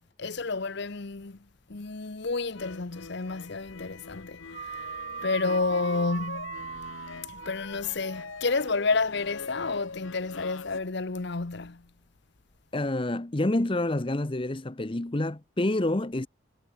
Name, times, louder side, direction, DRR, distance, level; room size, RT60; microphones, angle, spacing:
voice 1, 0.2-1.4 1.7-4.9 5.2-6.7 7.3-11.9, left 3 dB, 55° left, 0.9 m, -30 dB
sound 1, 2.5-10.8, left 4 dB, 70° left, 1.1 m, -43 dB
sound 2, 4.5-9.0, right 6 dB, 30° right, 0.8 m, -40 dB
voice 2, 12.7-16.3, left 1 dB, 25° left, 0.7 m, -28 dB
head